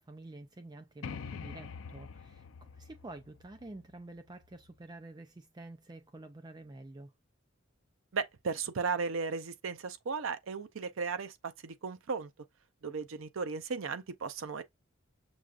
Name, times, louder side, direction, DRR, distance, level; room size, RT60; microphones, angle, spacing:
voice 1, 0.0-7.1, right 2 dB, 20° right, 0.4 m, -49 dB
sound 1, 1.0-4.7, left 5 dB, 75° left, 0.5 m, -46 dB
voice 2, 8.1-12.3 12.8-14.6, right 5 dB, 75° right, 0.6 m, -36 dB
6.2 x 2.4 x 2.4 m
head